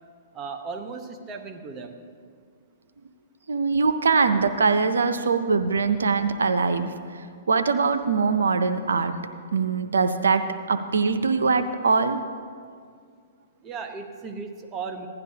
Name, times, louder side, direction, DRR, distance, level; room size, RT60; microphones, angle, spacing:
voice 1, 0.3-2.0 13.6-15.1, right 5 dB, 25° right, 6 dB, 0.9 m, -36 dB
voice 2, 3.5-9.2 9.5-12.2, right 4 dB, 90° right, 9 dB, 0.5 m, -22 dB
16.0 x 11.5 x 2.8 m, 2.1 s
hypercardioid pair, 130°, 0 cm